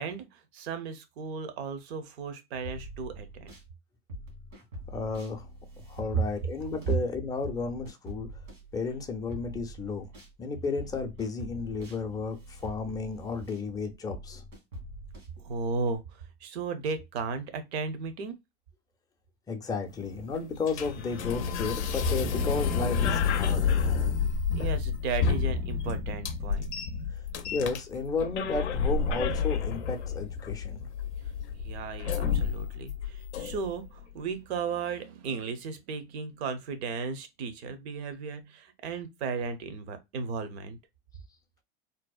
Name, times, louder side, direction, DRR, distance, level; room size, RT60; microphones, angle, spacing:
voice 1, 0.0-3.5 6.1-6.2 6.9-7.0 15.4-16.0 16.4-18.4 24.5-26.7 31.6-40.8, right 5 dB, 70° right, 0.7 m, -35 dB
sound 1, 2.6-3.7 4.1-10.3 10.8-16.0, equal, 85° right, 1.4 m, -45 dB
voice 2, 4.9-5.5 5.9-8.3 8.7-10.1 10.4-12.4 12.6-14.4 19.5-23.6 27.5-30.9, left 4 dB, 10° left, 0.4 m, -33 dB
sound 2, 19.9-33.9, left 6 dB, 90° left, 0.5 m, -30 dB
2.7 x 2.0 x 2.3 m
hypercardioid pair, 95°, 33 cm